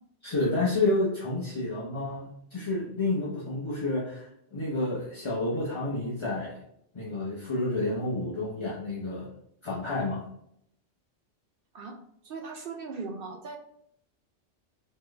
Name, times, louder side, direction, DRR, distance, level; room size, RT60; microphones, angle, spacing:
voice 1, 0.2-6.6 6.9-9.3 9.6-10.2, left 2 dB, 30° left, -6 dB, 0.7 m, -30 dB
voice 2, 12.2-13.6, right 4 dB, 60° right, 2 dB, 0.7 m, -38 dB
4.2 x 3.1 x 3.2 m, 0.70 s
omnidirectional pair, 1.2 m